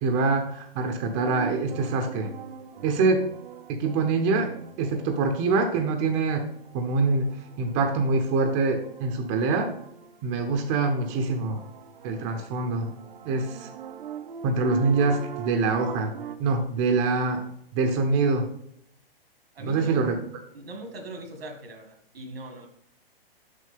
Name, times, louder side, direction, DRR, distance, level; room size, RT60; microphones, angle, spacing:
voice 1, 0.0-2.3 2.8-3.3 3.7-6.5 6.7-7.3 7.6-9.7 10.2-11.6 12.0-12.9 13.2-13.7 14.4-16.1 16.4-17.4 17.7-18.5 19.6-20.2, right 3 dB, 30° right, 4 dB, 0.9 m, -24 dB
sound 1, 0.9-16.4, right 7 dB, 60° right, 0.8 m, -43 dB
voice 2, 19.5-20.0 20.5-22.7, right 1 dB, 80° right, 5 dB, 2.0 m, -40 dB
6.7 x 6.0 x 3.7 m, 0.70 s
hypercardioid pair, 130°, 30 cm